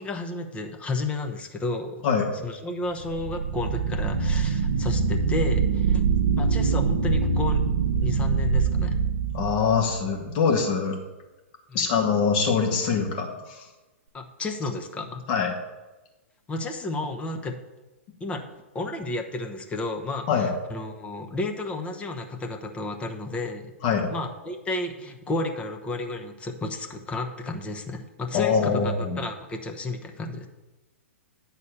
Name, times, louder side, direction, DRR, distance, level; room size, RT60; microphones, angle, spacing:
voice 1, 0.0-2.0 2.3-6.0 6.4-7.6 8.0-8.9 11.7-11.9 14.1-15.2 16.5-17.6 18.2-18.4 18.7-23.7 24.1-30.5, left 2 dB, 15° left, 4 dB, 0.9 m, -32 dB
sound 1, 3.0-10.0, right 5 dB, 75° right, 0.8 m, -24 dB
voice 2, 5.9-6.2 9.3-11.0 11.7-13.6 15.3-15.5 20.3-20.5 23.8-24.1 28.3-29.2, left 6 dB, 45° left, 2 dB, 1.8 m, -24 dB
9.5 x 4.1 x 6.7 m, 1.1 s
hypercardioid pair, 120°, 7 cm